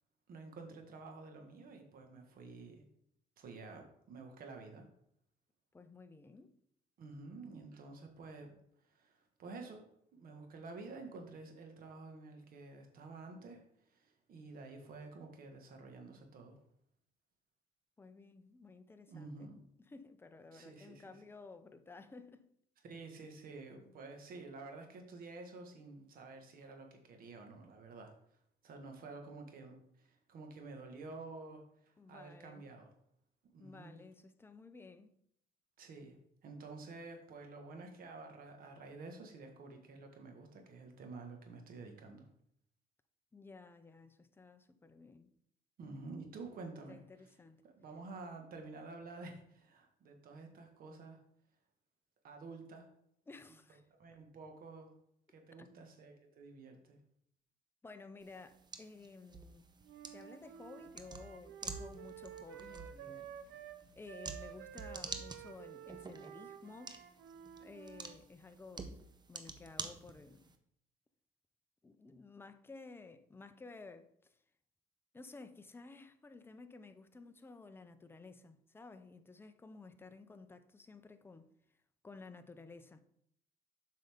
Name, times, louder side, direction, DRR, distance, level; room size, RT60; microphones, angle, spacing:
voice 1, 0.3-2.8 3.4-4.8 7.0-9.8 10.1-16.6 19.1-19.6 20.5-21.2 22.8-28.1 28.6-32.9 33.5-34.0 35.8-42.3 45.8-47.3 47.6-51.2 52.2-52.9 54.0-54.9 55.3-57.0, right 3 dB, 60° right, 1.5 m, -50 dB
voice 2, 5.7-6.5 18.0-19.5 19.8-22.5 32.0-32.7 33.6-35.1 43.3-45.3 46.9-47.6 53.3-53.8 55.6-55.7 57.8-59.7 60.1-63.7 63.9-67.0 67.6-69.0 69.3-70.5 71.8-74.4 75.1-81.5 82.0-83.0, left 3 dB, 15° left, 0.5 m, -54 dB
sound 1, 58.2-70.6, right 4 dB, 25° right, 0.7 m, -49 dB
Wind instrument woodwind instrument, 59.8-68.2, right 10 dB, 90° right, 0.7 m, -51 dB
7.6 x 5.5 x 3.6 m
cardioid pair, 110°, 17 cm